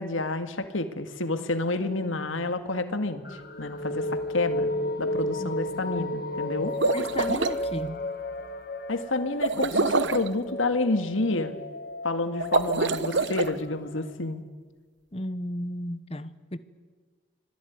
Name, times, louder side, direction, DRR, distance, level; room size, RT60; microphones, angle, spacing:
voice 1, 0.0-4.7 5.0-6.7 8.9-11.5 12.0-14.4, left 2 dB, 85° left, 2.1 m, -29 dB
sound 1, 3.2-14.0, left 1 dB, 50° left, 1.8 m, -33 dB
sound 2, 6.6-7.6 9.4-10.3 12.4-13.5, right 3 dB, 65° right, 0.9 m, -26 dB
voice 2, 6.9-8.0 15.1-16.6, left 1 dB, 30° left, 1.0 m, -34 dB
26.0 x 18.0 x 9.5 m
head